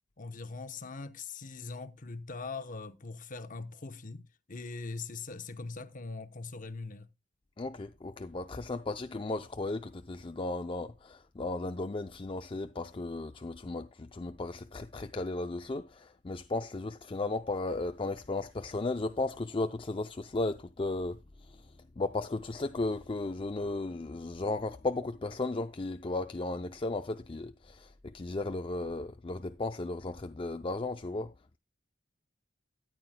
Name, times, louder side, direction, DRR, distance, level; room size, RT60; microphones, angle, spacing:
voice 1, 0.2-7.1, left 3 dB, 45° left, 0.9 m, -41 dB
voice 2, 7.6-21.2 22.0-31.3, left 2 dB, 25° left, 0.5 m, -35 dB
13.5 x 10.5 x 2.2 m
head